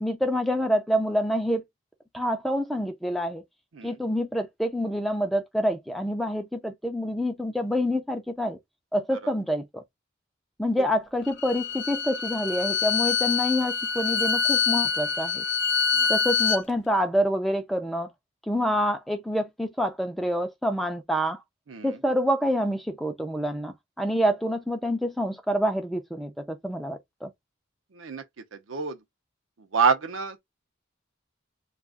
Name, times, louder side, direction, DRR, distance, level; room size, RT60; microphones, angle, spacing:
voice 1, 0.0-1.6 2.1-3.4 3.8-8.6 8.9-9.8 10.6-15.5 16.1-18.1 18.5-21.4 21.8-27.3, equal, ahead, 0.4 m, -27 dB
Bowed string instrument, 11.3-16.6, left 6 dB, 60° left, 0.6 m, -25 dB
voice 2, 21.7-22.0 27.9-28.2 28.5-29.0 29.6-30.4, right 6 dB, 75° right, 0.6 m, -27 dB
2.3 x 2.3 x 3.6 m
head